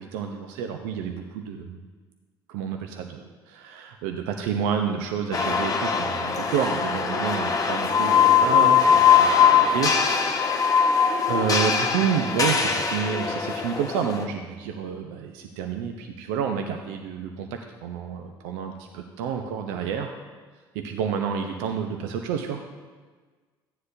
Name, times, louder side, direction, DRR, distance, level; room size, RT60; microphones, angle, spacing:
voice 1, 0.0-1.8 2.5-10.6 11.3-20.2 20.7-22.6, right 7 dB, 65° right, 5 dB, 0.8 m, -29 dB
sound 1, 5.3-14.2, left 7 dB, 30° left, 1.2 m, -21 dB
15.5 x 9.5 x 2.7 m, 1.4 s
figure-of-eight pair, 55°, 13 cm